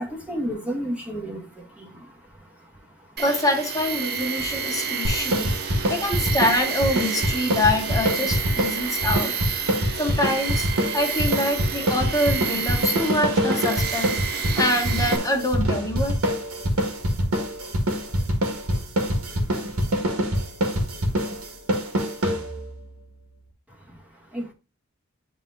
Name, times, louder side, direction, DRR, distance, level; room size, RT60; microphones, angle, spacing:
voice 1, 0.0-3.2 4.3-5.9 23.7-24.5, equal, 5° right, 1.1 m, -35 dB
voice 2, 3.2-5.5 5.9-9.3 10.0-16.2, left 1 dB, 15° left, 1.2 m, -25 dB
Tools, 3.2-15.2, right 6 dB, 50° right, 0.7 m, -30 dB
sound 1, 5.0-22.8, equal, 85° right, 1.8 m, -25 dB
9.9 x 3.6 x 2.7 m
head